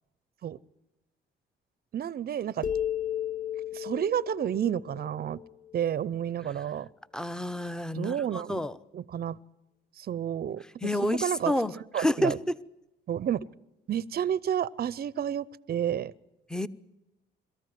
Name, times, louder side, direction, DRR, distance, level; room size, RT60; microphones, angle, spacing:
voice 1, 1.9-2.7 3.7-5.4 5.7-6.9 7.9-8.7 8.9-9.4 10.0-10.6 11.1-11.5 11.9-12.4 13.1-13.4 13.9-16.1, right 9 dB, 50° right, 22 dB, 0.7 m, -30 dB
sound 1, 2.6-6.1, left 10 dB, 40° left, 0.7 m, -34 dB
voice 2, 7.1-8.8 10.8-12.4 16.5-16.7, left 1 dB, 5° left, 16 dB, 0.9 m, -29 dB
22.5 x 14.0 x 9.5 m, 0.94 s
cardioid pair, 90°, 20 cm